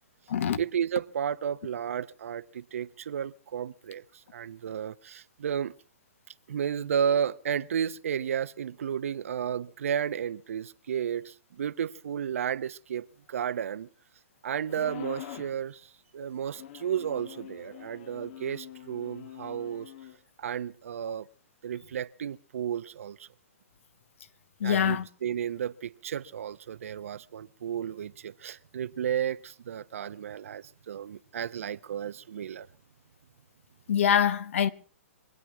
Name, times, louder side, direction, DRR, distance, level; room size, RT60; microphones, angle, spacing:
voice 1, 0.6-4.0 4.3-5.7 6.5-13.9 14.4-19.9 20.4-21.3 21.6-23.3 24.6-32.7, right 8 dB, 70° right, 0.8 m, -33 dB
sound 1, 14.7-15.6 16.5-20.2, left 11 dB, 50° left, 1.3 m, -44 dB
voice 2, 24.6-25.1 33.9-34.7, left 9 dB, 65° left, 1.2 m, -24 dB
24.5 x 8.8 x 6.0 m
hypercardioid pair, 140°, 8 cm